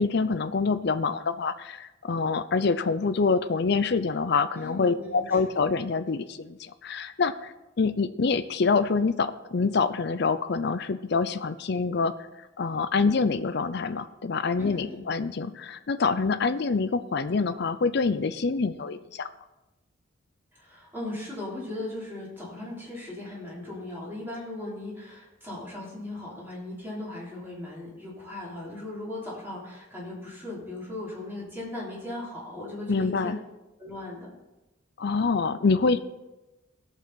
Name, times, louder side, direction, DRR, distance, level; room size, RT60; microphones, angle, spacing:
voice 1, 0.0-12.1 12.6-19.3 32.9-33.4 35.0-36.0, left 4 dB, 60° left, 11 dB, 0.5 m, -26 dB
voice 2, 4.6-5.7 14.6-15.0 20.5-33.4 33.8-34.3, left 2 dB, 10° right, -6 dB, 3.3 m, -38 dB
17.5 x 6.6 x 4.1 m, 1.0 s
head